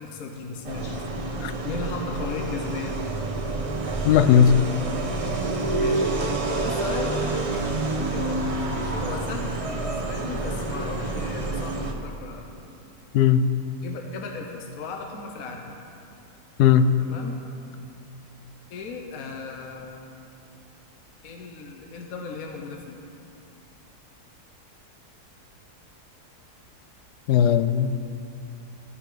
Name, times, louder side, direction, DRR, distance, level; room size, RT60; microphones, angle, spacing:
voice 1, 0.0-1.2 1.6-3.0 5.8-6.1 6.6-8.4 8.7-12.4 13.8-15.8 17.0-17.4 18.7-20.0 21.2-23.0, left 4 dB, 65° left, 2 dB, 1.3 m, -36 dB
sound 1, 0.6-11.9, right 2 dB, 30° right, 0.7 m, -28 dB
voice 2, 4.0-4.6 13.1-13.5 16.6-16.9 27.3-27.9, left 8 dB, 85° left, 11 dB, 1.1 m, -17 dB
12.5 x 10.0 x 4.9 m, 2.6 s
omnidirectional pair, 1.7 m